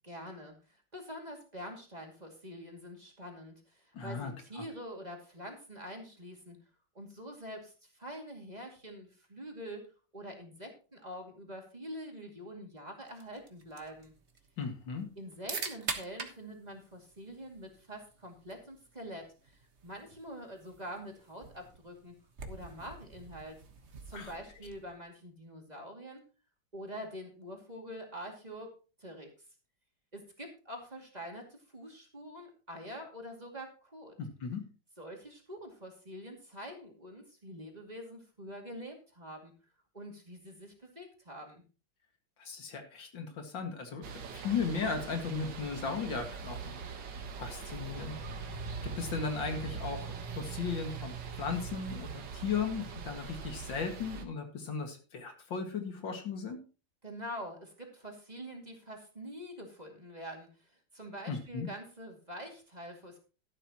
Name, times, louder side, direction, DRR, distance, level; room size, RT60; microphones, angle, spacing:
voice 1, 0.0-6.6 6.9-9.9 10.1-14.1 15.2-22.1 22.5-23.6 24.1-26.2 26.7-29.3 30.1-34.2 35.0-39.5 39.9-41.6 57.0-63.2, equal, 20° right, 1 dB, 2.5 m, -45 dB
voice 2, 3.9-4.3 4.6-4.7 14.6-15.1 24.1-24.3 34.2-34.6 42.4-44.1 44.3-47.1 47.4-48.2 48.8-56.6 61.3-61.7, left 5 dB, 80° left, 4 dB, 2.7 m, -36 dB
sound 1, 13.1-25.0, right 4 dB, 40° right, 1.5 m, -46 dB
sound 2, 44.0-54.2, right 5 dB, 70° right, 1.9 m, -42 dB
12.5 x 11.5 x 3.0 m, 0.35 s
omnidirectional pair, 2.0 m